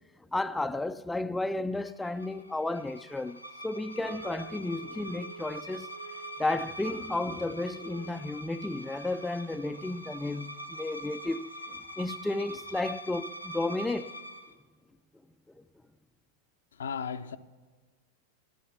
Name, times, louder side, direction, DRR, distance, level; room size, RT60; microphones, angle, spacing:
voice 1, 0.3-5.9 6.4-14.2, left 2 dB, 5° left, 0.3 m, -33 dB
sound 1, 1.8-14.5, right 1 dB, 85° left, 0.9 m, -44 dB
sound 2, 4.0-8.4, right 3 dB, 70° right, 0.8 m, -48 dB
voice 2, 16.7-17.4, left 6 dB, 65° left, 0.6 m, -35 dB
13.5 x 11.5 x 7.1 m
figure-of-eight pair, 90°, 0 cm